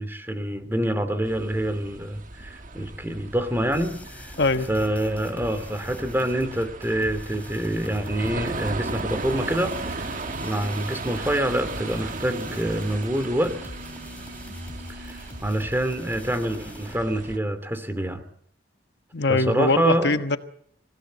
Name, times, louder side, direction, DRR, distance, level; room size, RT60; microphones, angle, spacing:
voice 1, 0.0-4.4 4.7-13.7 15.0-18.2 19.3-20.2, right 1 dB, 10° right, 10 dB, 2.6 m, -26 dB
sound 1, 1.2-17.4, right 3 dB, 45° right, 1.3 m, -37 dB
sound 2, 3.7-17.0, left 1 dB, 10° left, 3.3 m, -43 dB
voice 2, 4.4-4.7 19.1-20.4, left 3 dB, 60° left, 8 dB, 1.3 m, -22 dB
sound 3, 9.1-15.6, left 2 dB, 85° right, 4.5 m, -45 dB
27.5 x 17.0 x 8.1 m, 0.65 s
head